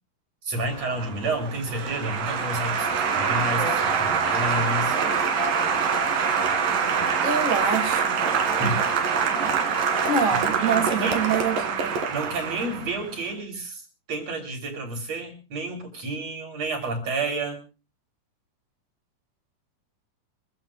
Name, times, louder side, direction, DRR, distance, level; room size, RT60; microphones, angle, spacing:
voice 1, 0.4-5.0 8.5-9.0 10.5-11.2 12.1-13.8 14.1-17.6, right 2 dB, 40° right, 4.7 m, -30 dB
Applause, 0.7-13.1, right 6 dB, 60° right, 3.9 m, -25 dB
voice 2, 3.5-3.8 7.2-8.3 10.0-12.0, right 5 dB, 25° right, 2.3 m, -26 dB
25.5 x 15.5 x 2.5 m
omnidirectional pair, 4.6 m